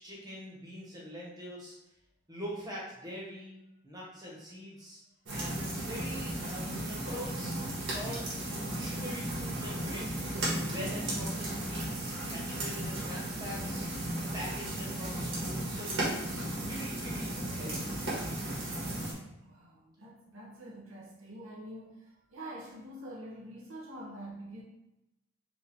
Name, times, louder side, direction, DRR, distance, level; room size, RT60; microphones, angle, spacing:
voice 1, 0.0-1.7 2.3-3.6 3.8-5.0 5.3-8.4 8.8-10.3 10.6-13.9 14.3-18.0, equal, 20° right, -5 dB, 1.2 m, -44 dB
sound 1, 5.3-19.1, right 1 dB, 70° right, 1.6 m, -35 dB
voice 2, 19.4-24.6, right 1 dB, 85° right, -4 dB, 0.9 m, -46 dB
4.9 x 2.6 x 3.6 m, 0.92 s
head